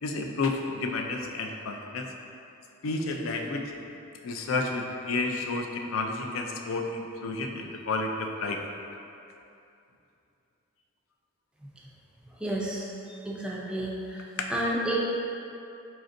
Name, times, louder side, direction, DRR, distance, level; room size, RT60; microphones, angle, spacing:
voice 1, 0.0-2.1 2.8-3.6 4.2-8.6, left 3 dB, 70° left, 2 dB, 0.4 m, -31 dB
voice 2, 12.4-12.8 13.2-14.2 14.5-15.0, right 1 dB, 5° right, -4 dB, 0.4 m, -30 dB
4.2 x 3.9 x 2.5 m, 2.7 s
head